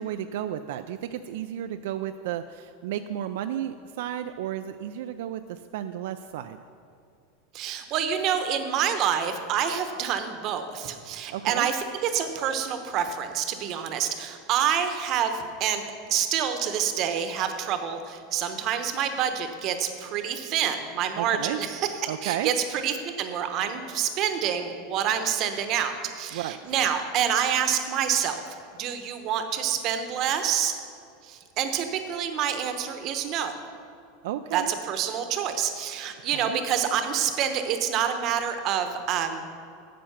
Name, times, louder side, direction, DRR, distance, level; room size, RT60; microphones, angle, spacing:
voice 1, 0.0-6.6 11.3-11.7 21.2-21.6 22.1-22.5 26.3-26.6 34.2-34.7 36.3-36.6, right 11 dB, 70° right, 9 dB, 0.3 m, -33 dB
voice 2, 7.5-28.4 28.8-30.7 31.2-33.6 34.5-39.4, right 8 dB, 35° right, 8 dB, 0.9 m, -27 dB
10.0 x 7.7 x 5.8 m, 2.5 s
supercardioid pair, 160°, 0 cm